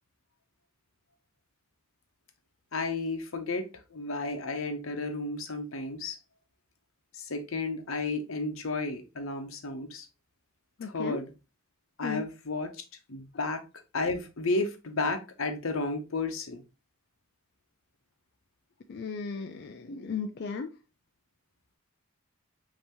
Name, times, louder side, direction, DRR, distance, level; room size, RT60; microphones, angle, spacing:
voice 1, 2.7-6.2 7.1-10.1 10.8-11.3 12.0-13.6 13.9-16.6, left 3 dB, 70° left, 0.8 m, -33 dB
voice 2, 10.8-11.2 12.0-12.2 18.9-20.7, left 5 dB, 50° left, 0.4 m, -35 dB
5.5 x 2.9 x 2.9 m
head